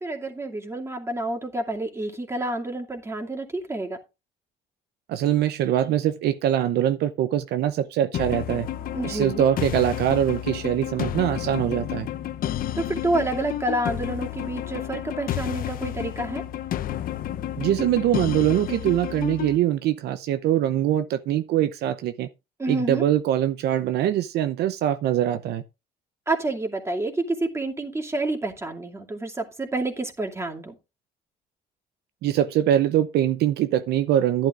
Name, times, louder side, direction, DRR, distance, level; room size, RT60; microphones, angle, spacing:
voice 1, 0.0-4.0 8.9-9.4 12.8-16.4 22.6-23.0 26.3-30.8, right 2 dB, 15° right, 2.5 m, -28 dB
voice 2, 5.1-8.7 9.0-12.1 17.6-22.3 22.7-25.6 32.2-34.5, right 11 dB, 75° right, 0.7 m, -23 dB
sound 1, 8.1-19.6, left 11 dB, 60° left, 0.8 m, -31 dB
12.0 x 11.0 x 2.5 m
cardioid pair, 110°, 17 cm